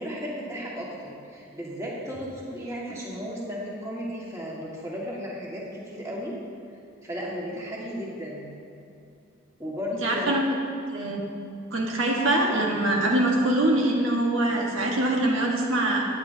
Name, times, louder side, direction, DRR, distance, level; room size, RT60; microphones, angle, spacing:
voice 1, 0.0-6.3 7.0-8.5 9.6-10.4, equal, 15° right, -5 dB, 1.8 m, -34 dB
voice 2, 10.0-10.4 10.9-11.2 11.7-16.1, right 1 dB, 70° right, -1 dB, 1.5 m, -24 dB
18.0 x 8.9 x 2.9 m, 2.6 s
head